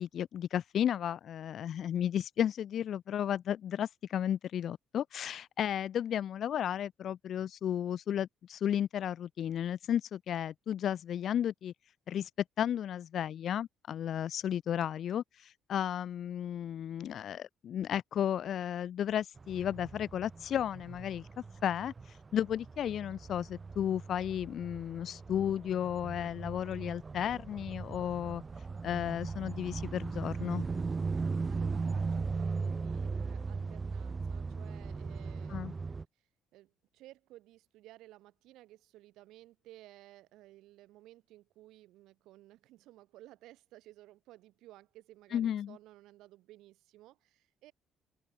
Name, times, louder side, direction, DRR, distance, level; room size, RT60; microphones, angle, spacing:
voice 1, 0.0-11.7 12.1-12.3 12.6-21.3 21.6-28.4 28.8-30.6 35.5-35.7 45.3-45.8, left 10 dB, 50° left, 1.2 m, -33 dB
sound 1, 19.4-36.0, right 4 dB, 20° right, 1.8 m, -38 dB
voice 2, 31.5-35.9 36.5-47.7, right 16 dB, 85° right, 4.4 m, -56 dB
cardioid pair, 145°, 0 cm